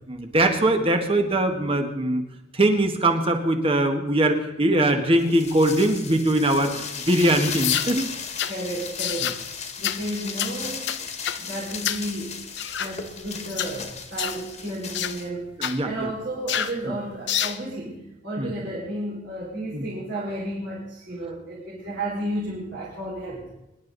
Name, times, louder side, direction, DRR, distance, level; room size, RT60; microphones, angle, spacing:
voice 1, 0.1-2.2 2.5-8.1 9.2-9.3 15.6-16.1 18.4-18.5 19.7-19.9, right 1 dB, 30° right, 5 dB, 1.7 m, -22 dB
sound 1, 5.2-15.3, left 6 dB, 35° left, 1.8 m, -36 dB
sound 2, 7.6-7.9 8.4-8.6 9.0-9.4 9.8-10.0 10.4-10.6 10.9-11.4 11.8-12.1 12.6-12.9 13.5-13.7 14.2-14.4 14.9-15.2 15.6-15.8 16.5-16.8 17.3-17.6, left 10 dB, 60° left, 0.7 m, -27 dB
voice 2, 8.5-9.3 9.8-10.9 11.4-12.4 12.8-15.5 15.8-23.4, right 1 dB, 60° right, -7 dB, 4.9 m, -32 dB
24.5 x 11.5 x 4.1 m, 0.90 s
head